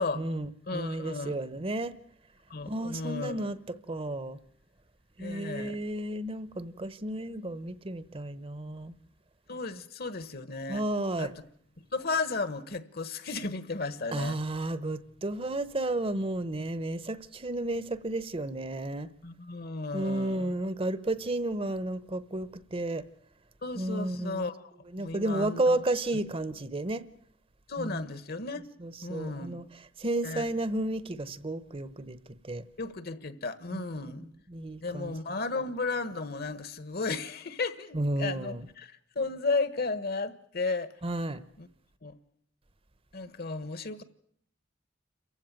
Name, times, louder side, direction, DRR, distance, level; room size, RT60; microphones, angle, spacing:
voice 1, 0.0-1.9 2.7-4.4 5.2-8.9 10.7-11.3 14.1-19.1 19.9-23.0 23.8-24.5 24.9-27.0 27.8-28.0 28.8-29.6 30.0-32.2 32.4-32.6 33.7-33.8 34.2-35.1 37.9-38.7 41.0-41.4, right 1 dB, 30° right, 0.9 m, -32 dB
voice 2, 0.7-1.4 2.5-3.4 5.2-5.8 9.5-10.8 11.2-11.3 11.9-14.4 19.2-20.5 23.6-24.7 25.0-25.8 27.7-28.6 29.0-29.6 30.2-30.4 32.8-34.3 34.8-40.9 41.6-41.7 42.0-42.2 43.1-44.0, left 3 dB, 55° left, 1.4 m, -34 dB
28.5 x 15.5 x 8.9 m
head